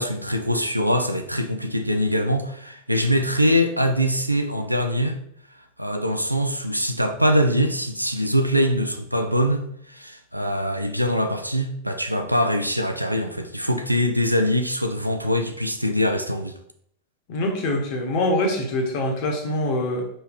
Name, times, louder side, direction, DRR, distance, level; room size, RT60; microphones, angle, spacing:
voice 1, 0.0-5.2 5.8-16.5, equal, 90° right, 0.7 m, -23 dB
voice 2, 17.3-20.0, left 1 dB, 45° left, 1.7 m, -24 dB
5.6 x 4.5 x 4.7 m
figure-of-eight pair, 90°, 0 cm